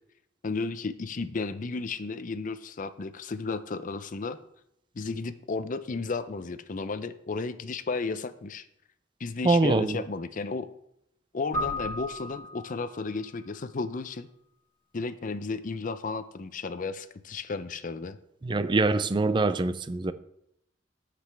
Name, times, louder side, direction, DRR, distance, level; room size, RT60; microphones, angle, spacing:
voice 1, 0.4-4.4 5.0-8.6 9.2-10.7 11.3-14.3 14.9-18.2, left 4 dB, 45° left, 0.5 m, -33 dB
voice 2, 9.4-10.0 18.4-20.1, right 3 dB, 25° right, 0.4 m, -24 dB
Keyboard (musical), 11.5-13.3, left 1 dB, 15° left, 2.7 m, -35 dB
15.0 x 5.0 x 3.4 m
head